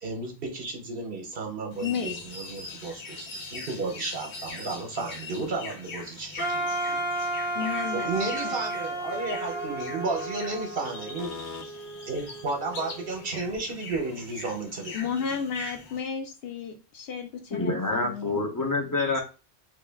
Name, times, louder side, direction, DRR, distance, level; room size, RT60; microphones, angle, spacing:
voice 1, 0.0-7.0 7.9-11.3 12.1-14.9, right 3 dB, 60° right, 3 dB, 0.9 m, -33 dB
sound 1, 1.7-16.0, left 3 dB, 85° left, 1.1 m, -42 dB
voice 2, 1.8-2.4 7.5-8.5 11.2-11.6 14.9-18.4, left 6 dB, 65° left, 4 dB, 0.9 m, -33 dB
Wind instrument woodwind instrument, 6.4-11.4, right 1 dB, 50° left, 1.2 m, -32 dB
Wind instrument woodwind instrument 2, 9.0-13.6, right 3 dB, 45° right, 0.6 m, -43 dB
voice 3, 17.5-19.2, left 2 dB, 25° left, 1 dB, 0.5 m, -27 dB
3.2 x 2.3 x 3.3 m, 0.32 s
omnidirectional pair, 1.1 m